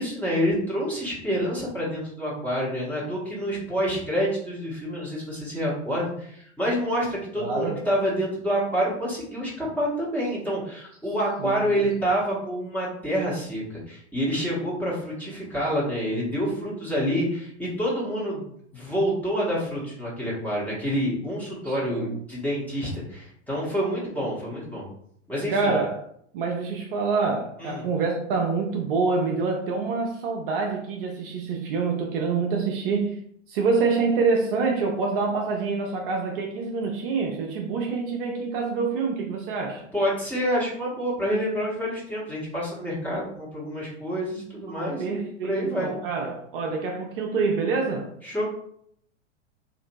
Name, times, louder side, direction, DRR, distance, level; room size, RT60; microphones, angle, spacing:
voice 1, 0.0-18.4 18.7-24.9 25.3-25.8 27.6-27.9 39.9-45.9 48.2-48.4, equal, 5° left, -6 dB, 1.1 m, -27 dB
voice 2, 7.4-7.8 11.4-11.7 21.6-22.2 25.5-26.0 26.3-33.2 33.5-39.8 44.7-48.1, right 4 dB, 50° right, 1 dB, 0.6 m, -26 dB
2.8 x 2.6 x 2.6 m, 0.67 s
figure-of-eight pair, 95°, 36 cm